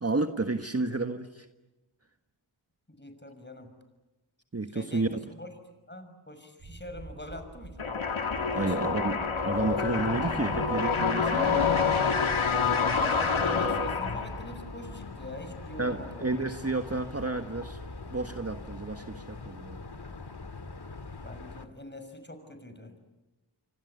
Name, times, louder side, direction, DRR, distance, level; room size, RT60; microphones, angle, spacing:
voice 1, 0.0-1.5 4.5-5.2 8.5-11.7 15.8-17.8 18.1-19.8, right 3 dB, 30° right, 7 dB, 1.5 m, -31 dB
voice 2, 2.9-3.7 4.7-5.5 5.9-8.8 12.9-16.4 21.2-23.1, left 1 dB, 20° left, 8 dB, 6.2 m, -44 dB
sound 1, 6.6-19.5, right 2 dB, 75° right, 6.8 m, -48 dB
sound 2, 7.8-14.5, left 5 dB, 80° left, 2.4 m, -27 dB
sound 3, 9.6-21.7, left 3 dB, 55° left, 2.2 m, -40 dB
27.5 x 25.0 x 8.2 m, 1.0 s
cardioid pair, 45°, 48 cm